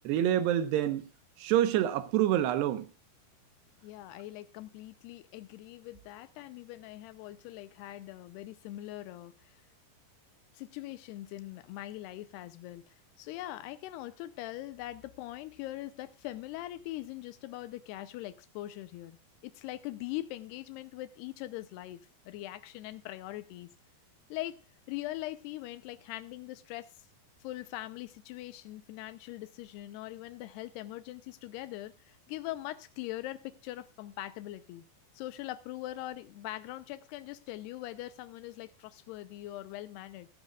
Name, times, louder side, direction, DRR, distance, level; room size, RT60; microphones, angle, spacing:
voice 1, 0.0-1.1 1.4-2.9, right 11 dB, 90° right, 3.2 m, -27 dB
voice 2, 3.8-9.6 10.5-19.2 19.4-23.7 24.3-24.6 24.9-26.9 27.4-34.8 35.1-40.3, left 15 dB, 85° left, 2.8 m, -42 dB
16.0 x 14.5 x 2.4 m
omnidirectional pair, 4.7 m